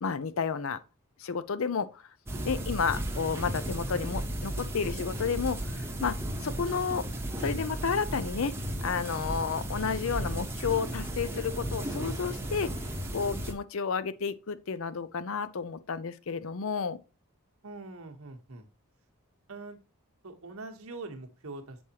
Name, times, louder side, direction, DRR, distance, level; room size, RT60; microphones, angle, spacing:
voice 1, 0.0-0.8 1.2-2.0 2.5-6.2 6.4-7.1 7.4-8.5 8.8-12.7 13.1-17.0, left 6 dB, 65° left, 0.5 m, -31 dB
sound 1, 2.3-13.5, right 1 dB, 10° right, 0.8 m, -35 dB
voice 2, 17.6-18.7 19.5-19.8 20.2-21.8, right 3 dB, 75° right, 1.1 m, -43 dB
7.1 x 4.8 x 2.8 m
head